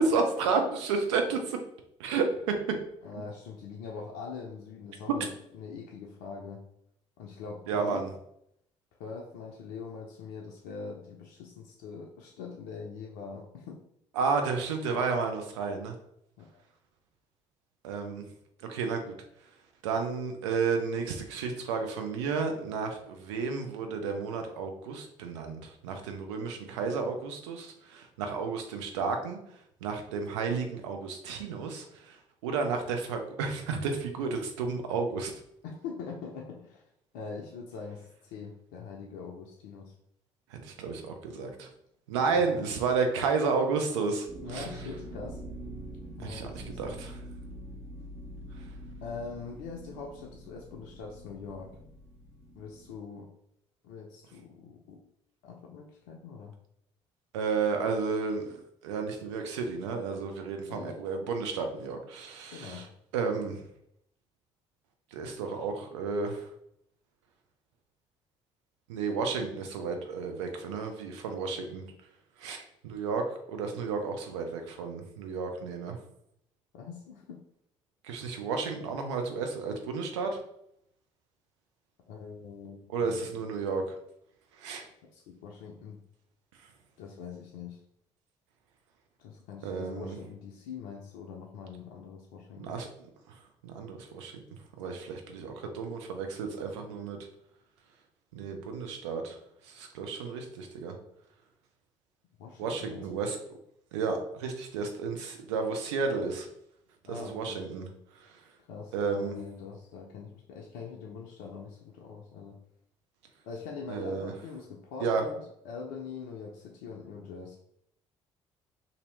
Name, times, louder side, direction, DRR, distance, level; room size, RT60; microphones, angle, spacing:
voice 1, 0.0-1.6 2.0-2.3 7.7-8.1 14.2-16.0 17.8-18.3 18.7-19.1 19.8-29.4 29.8-32.2 32.4-35.3 40.5-41.7 42.1-44.7 46.2-47.2 57.3-62.9 63.1-63.6 65.1-66.4 68.9-71.8 72.4-76.0 78.0-80.4 82.9-84.0 84.6-84.9 89.6-90.2 92.6-92.9 93.6-94.4 94.8-97.2 98.3-99.3 99.7-101.0 102.6-103.4 103.9-106.5 107.1-107.9 108.9-109.3 113.9-114.3 115.0-115.2, right 4 dB, 70° right, 5 dB, 0.5 m, -32 dB
voice 2, 3.0-5.3 5.5-6.6 7.2-8.1 9.0-13.8 16.4-16.6 35.6-36.8 37.1-39.9 42.1-42.7 44.4-45.4 46.2-47.0 49.0-51.8 52.6-53.3 53.8-55.0 55.4-56.6 60.5-61.0 62.5-62.9 76.7-77.4 82.1-83.5 85.1-86.0 87.0-87.8 89.2-92.8 102.4-103.0 107.1-107.6 108.7-112.6 113.4-117.6, left 5 dB, 60° left, -1 dB, 0.4 m, -43 dB
sound 1, 44.3-52.9, right 1 dB, 50° right, 1.1 m, -45 dB
2.7 x 2.6 x 3.0 m, 0.73 s
figure-of-eight pair, 50°, 15 cm